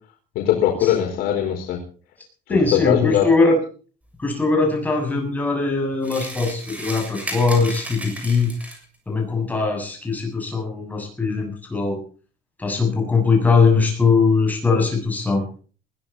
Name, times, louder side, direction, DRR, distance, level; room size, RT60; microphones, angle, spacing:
voice 1, 0.3-1.8 2.5-3.3, left 11 dB, 85° left, 4.7 m, -20 dB
voice 2, 2.5-3.6 4.2-8.5 9.1-12.0 12.6-15.4, left 4 dB, 10° left, 7.4 m, -20 dB
sound 1, 6.0-9.0, right 1 dB, 10° right, 6.9 m, -34 dB
21.0 x 16.0 x 4.2 m
cardioid pair, 160°, 15 cm